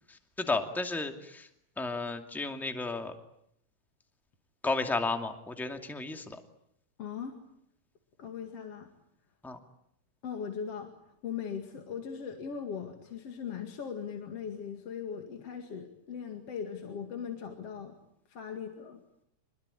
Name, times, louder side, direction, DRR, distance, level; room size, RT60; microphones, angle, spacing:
voice 1, 0.4-1.4 1.8-3.1 4.6-6.4 9.4-9.6, left 3 dB, ahead, 6 dB, 2.0 m, -33 dB
voice 2, 7.0-7.4 8.2-8.9 10.2-10.9 11.2-18.0 18.3-19.0, left 7 dB, 55° left, 5 dB, 3.1 m, -39 dB
27.0 x 21.5 x 9.9 m, 0.72 s
omnidirectional pair, 3.3 m